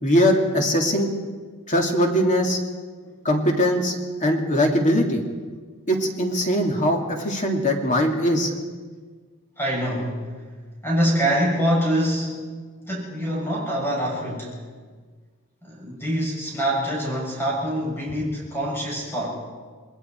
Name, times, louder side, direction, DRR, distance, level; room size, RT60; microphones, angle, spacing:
voice 1, 0.0-1.1 1.7-2.6 3.2-3.9 4.2-5.2 5.9-8.5, equal, 35° left, 2 dB, 2.5 m, -21 dB
voice 2, 9.6-10.2 10.8-12.4 12.9-14.6 15.6-19.3, equal, 10° left, -4 dB, 7.3 m, -25 dB
28.0 x 20.5 x 4.5 m, 1.5 s
head